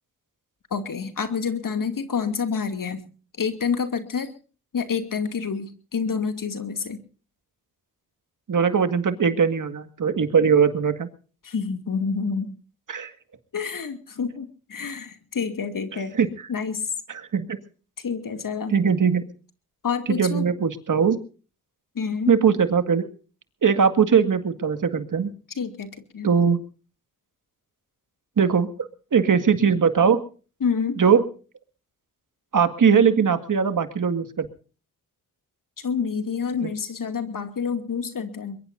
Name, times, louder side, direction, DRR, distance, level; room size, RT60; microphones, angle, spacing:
voice 1, 0.7-3.0 3.4-4.3 4.7-7.0 11.4-12.5 13.5-16.1 16.5-16.9 18.0-18.8 19.8-20.4 21.9-22.4 25.6-26.3 30.6-31.0 35.8-38.6, left 6 dB, 60° left, 8 dB, 2.5 m, -28 dB
voice 2, 8.5-11.1 12.9-13.1 15.9-16.3 17.1-17.6 18.7-19.2 20.1-21.2 22.3-23.0 23.6-25.3 26.2-26.6 28.4-28.7 29.1-30.2 31.0-31.2 32.5-34.5 36.6-36.7, right 6 dB, 55° right, 9 dB, 2.0 m, -20 dB
22.5 x 22.0 x 2.6 m, 0.38 s
supercardioid pair, 50°, 36 cm